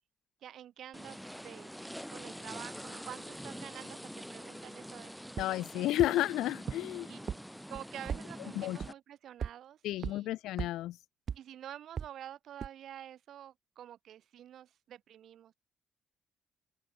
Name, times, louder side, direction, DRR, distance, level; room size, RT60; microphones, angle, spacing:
voice 1, 0.4-1.8 2.1-6.3 7.1-7.4 7.7-10.3 11.3-15.5, right 11 dB, 70° right, 6.7 m, -49 dB
sound 1, 0.9-8.9, equal, ahead, 1.0 m, -45 dB
voice 2, 5.4-7.1 8.5-8.8 9.8-11.0, left 15 dB, 90° left, 1.6 m, -32 dB
sound 2, 5.4-5.5 6.0-6.1 6.7-6.8 7.3-7.4 7.7-8.2 8.8-8.9 9.4-9.5 10.0-10.1 10.6-10.7 11.3-11.4 12.0-12.1 12.6-12.7, right 7 dB, 50° right, 1.9 m, -35 dB
open air
cardioid pair, 90°, 0 cm